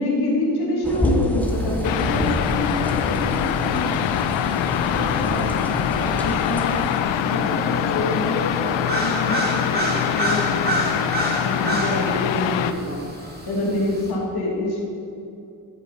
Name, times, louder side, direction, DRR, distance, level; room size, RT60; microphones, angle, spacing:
voice 1, 0.0-3.9 4.7-6.8 7.2-9.8 10.1-11.1 11.4-14.8, left 2 dB, 55° left, -4 dB, 2.5 m, -27 dB
sound 1, 0.8-7.0, equal, 5° left, 1.0 m, -28 dB
sound 2, 1.4-14.1, right 1 dB, 20° right, 2.3 m, -32 dB
sound 3, 1.8-12.7, left 9 dB, 75° left, 0.6 m, -24 dB
13.5 x 7.2 x 4.2 m, 2.6 s
cardioid pair, 80°, 46 cm